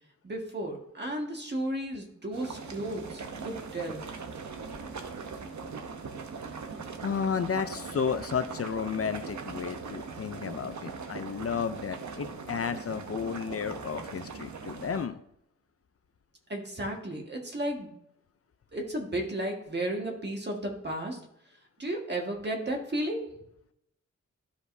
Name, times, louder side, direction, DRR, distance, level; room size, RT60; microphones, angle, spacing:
voice 1, 0.2-4.0 16.5-17.9 18.7-21.2 21.8-23.2, right 1 dB, 35° right, 0 dB, 1.6 m, -33 dB
sound 1, 2.3-15.1, right 4 dB, 75° right, 0.8 m, -40 dB
voice 2, 7.0-15.2, left 6 dB, 55° left, 10 dB, 0.5 m, -32 dB
12.5 x 4.9 x 2.7 m, 0.75 s
wide cardioid pair, 130°, 29 cm